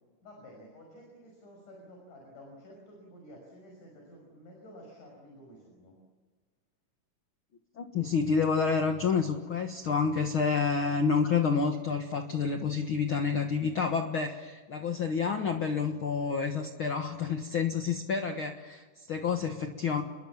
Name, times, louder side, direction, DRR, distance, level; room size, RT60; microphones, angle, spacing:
voice 1, 0.2-6.0, equal, 65° left, 0 dB, 7.2 m, -51 dB
voice 2, 7.8-20.0, left 5 dB, 50° left, 5 dB, 1.8 m, -29 dB
29.0 x 22.0 x 7.3 m, 1.4 s
omnidirectional pair, 3.8 m